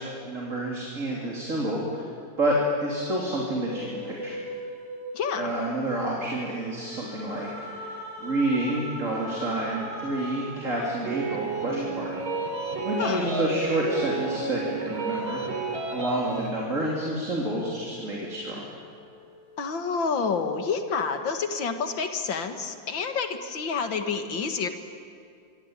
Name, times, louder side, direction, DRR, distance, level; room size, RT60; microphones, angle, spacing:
voice 1, 0.0-2.1 2.4-2.6 2.8-4.3 5.4-12.1 12.8-15.6 15.9-18.7, right 1 dB, 40° right, -3 dB, 3.7 m, -29 dB
sound 1, 3.7-17.4 17.9-19.5, left 1 dB, 50° left, 8.3 m, -40 dB
voice 2, 5.1-5.5 13.0-13.3 19.6-24.7, left 5 dB, 70° left, 7 dB, 2.5 m, -28 dB
sound 2, 11.1-16.5, right 4 dB, 80° right, 3.9 m, -32 dB
25.5 x 24.5 x 9.0 m, 2.4 s
omnidirectional pair, 2.2 m